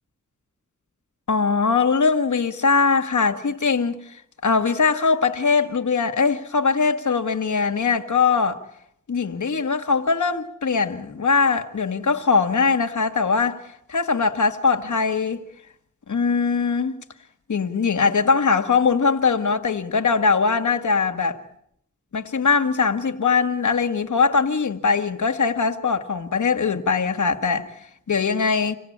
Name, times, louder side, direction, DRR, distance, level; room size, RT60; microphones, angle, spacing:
voice 1, 1.3-4.0 4.4-8.6 9.1-13.6 13.9-15.4 16.1-17.0 17.5-21.4 22.1-27.7 28.1-28.8, left 5 dB, 80° left, 1.8 m, -21 dB
27.5 x 17.5 x 8.7 m
wide cardioid pair, 75°, 30 cm